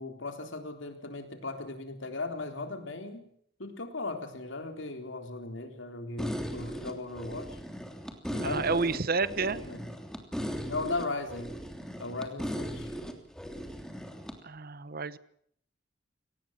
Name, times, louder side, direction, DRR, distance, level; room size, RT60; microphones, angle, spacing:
voice 1, 0.0-3.3 3.6-7.6 8.3-9.8 10.7-11.5 12.0-12.9, left 3 dB, 75° left, 6 dB, 3.8 m, -37 dB
sound 1, 6.2-14.3, equal, 5° left, 3.1 m, -38 dB
voice 2, 8.4-9.6 14.4-15.2, right 4 dB, 50° right, 17 dB, 1.0 m, -30 dB
24.5 x 19.0 x 7.5 m, 0.66 s
head